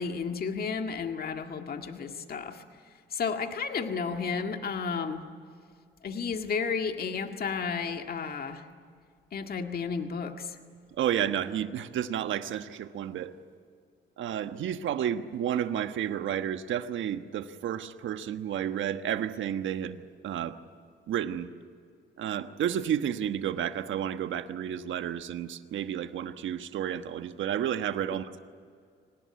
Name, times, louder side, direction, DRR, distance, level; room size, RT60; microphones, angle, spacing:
voice 1, 0.0-2.6 3.1-5.2 6.0-8.6 9.3-10.5, left 5 dB, 50° left, 5 dB, 1.9 m, -32 dB
voice 2, 11.0-13.3 14.2-20.6 21.1-21.5 22.2-28.4, right 10 dB, 75° right, 9 dB, 1.3 m, -31 dB
25.5 x 19.0 x 9.6 m, 2.2 s
cardioid pair, 90°, 20 cm